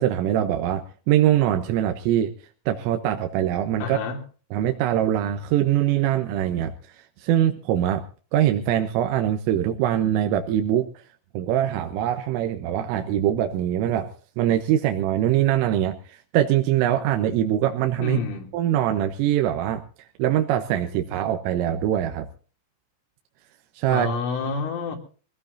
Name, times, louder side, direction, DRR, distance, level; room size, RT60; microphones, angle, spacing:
voice 1, 0.0-2.3 2.7-4.0 4.5-6.7 7.2-8.0 8.3-10.9 11.4-18.2 18.5-19.8 20.2-22.3 23.8-24.1, right 11 dB, 85° right, 3.6 m, -23 dB
voice 2, 3.8-4.2 18.0-18.5 23.9-25.0, left 4 dB, 75° left, 5.4 m, -28 dB
24.0 x 17.0 x 2.7 m
omnidirectional pair, 5.7 m